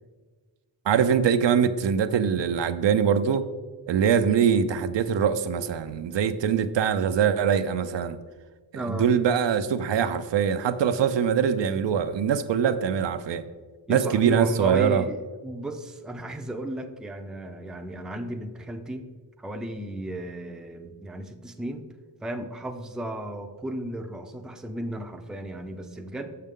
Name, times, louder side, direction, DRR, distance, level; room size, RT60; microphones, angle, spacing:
voice 1, 0.9-3.5 3.9-8.2 8.7-13.4 13.9-15.0, right 7 dB, 75° right, 10 dB, 0.6 m, -23 dB
voice 2, 8.7-9.1 13.9-19.1 19.4-21.8 22.2-26.4, right 1 dB, ahead, 5 dB, 0.4 m, -34 dB
6.6 x 6.5 x 3.6 m, 1.4 s
wide cardioid pair, 105°, 44 cm